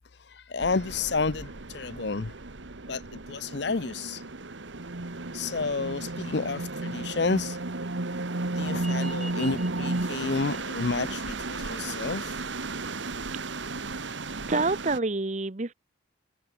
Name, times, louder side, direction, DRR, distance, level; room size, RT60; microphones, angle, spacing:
voice 1, 0.0-2.3 2.9-4.3 5.3-7.6 8.6-12.4, left 4 dB, 60° left, 0.7 m, -31 dB
sound 1, 0.6-15.0, right 2 dB, 70° right, 1.5 m, -34 dB
sound 2, 8.7-13.8, equal, ahead, 5.1 m, -49 dB
voice 2, 14.5-15.7, right 3 dB, 35° right, 0.8 m, -27 dB
head